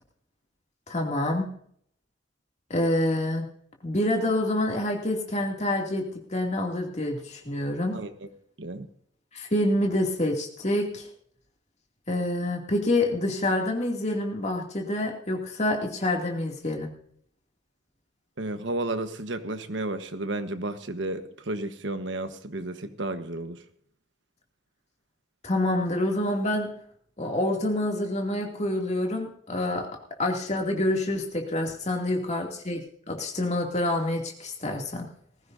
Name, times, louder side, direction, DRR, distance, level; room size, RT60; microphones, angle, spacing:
voice 1, 0.9-1.4 2.7-3.5 3.8-6.0 6.3-8.0 9.3-11.1 12.1-16.9 25.4-26.7 27.2-29.9 30.2-32.8 33.1-35.1, left 1 dB, 35° left, 1 dB, 2.5 m, -27 dB
voice 2, 7.9-8.3 8.6-8.9 18.4-23.6, right 2 dB, 70° right, 9 dB, 1.3 m, -32 dB
19.5 x 15.5 x 2.7 m, 0.64 s
head